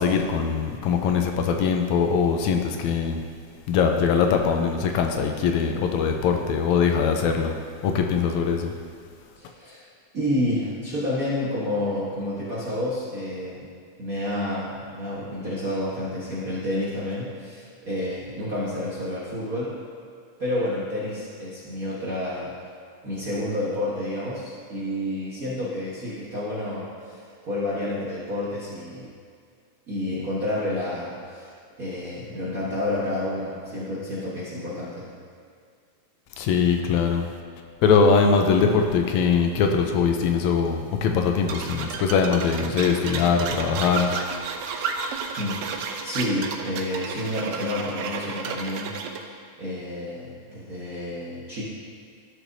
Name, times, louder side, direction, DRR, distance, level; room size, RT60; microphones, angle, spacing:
voice 1, 0.0-3.2 3.7-7.6 7.8-8.7 36.4-37.3 37.8-44.1, left 6 dB, 80° left, 4 dB, 1.9 m, -22 dB
voice 2, 9.4-9.9 10.1-13.7 14.0-19.8 20.4-22.5 23.0-29.1 29.9-31.5 31.8-35.1 45.4-49.3 49.6-51.6, left 1 dB, 45° right, -9 dB, 1.1 m, -29 dB
sound 1, 41.5-49.2, right 5 dB, 85° right, 1.3 m, -32 dB
13.5 x 6.3 x 2.7 m, 2.2 s
omnidirectional pair, 3.3 m